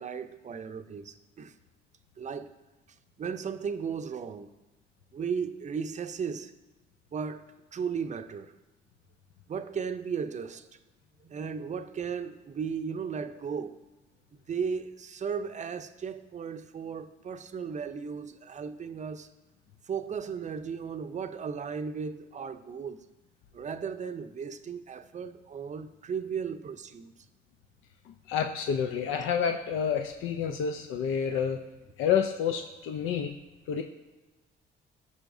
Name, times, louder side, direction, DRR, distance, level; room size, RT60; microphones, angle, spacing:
voice 1, 0.0-1.5 2.2-2.5 3.2-4.6 5.1-6.5 7.1-8.6 9.5-10.8 11.2-13.8 14.5-19.3 19.9-23.0 23.5-27.1 31.3-31.4, right 6 dB, 35° right, 0.5 m, -36 dB
voice 2, 28.1-31.6 32.0-33.3 33.7-33.8, left 7 dB, 85° left, 0.5 m, -29 dB
13.5 x 5.6 x 2.6 m
cardioid pair, 90°, 20 cm